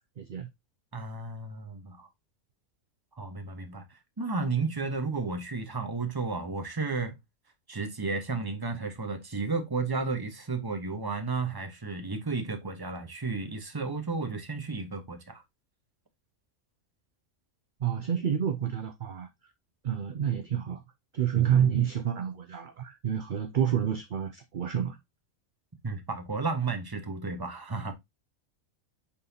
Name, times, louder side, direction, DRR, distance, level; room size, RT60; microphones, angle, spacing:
voice 1, 0.2-0.5 17.8-19.3 19.8-20.8 21.1-25.0, right 9 dB, 50° right, 0.7 m, -28 dB
voice 2, 0.9-2.1 3.2-3.8 4.2-7.2 7.7-15.4 25.8-27.9, right 4 dB, 20° right, 1.0 m, -33 dB
8.6 x 4.0 x 2.8 m
omnidirectional pair, 1.4 m